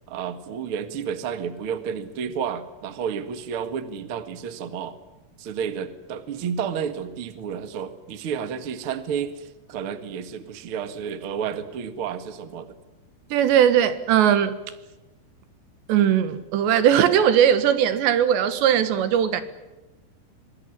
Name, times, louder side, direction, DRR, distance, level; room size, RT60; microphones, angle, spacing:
voice 1, 0.1-5.0 5.4-12.8, right 7 dB, 55° right, 1.6 m, -31 dB
voice 2, 13.3-14.6 15.9-19.4, right 9 dB, 80° right, 3.7 m, -19 dB
25.0 x 19.5 x 9.9 m
omnidirectional pair, 5.1 m